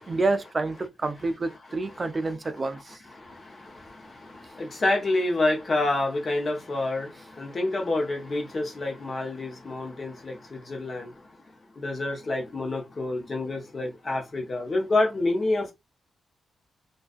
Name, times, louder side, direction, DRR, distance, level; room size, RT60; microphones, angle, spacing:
voice 1, 0.1-3.0, right 3 dB, 30° right, 0.3 m, -28 dB
voice 2, 3.1-11.2 11.8-15.7, left 2 dB, 35° left, 0.8 m, -28 dB
2.5 x 2.3 x 2.4 m
wide cardioid pair, 140°, 0 cm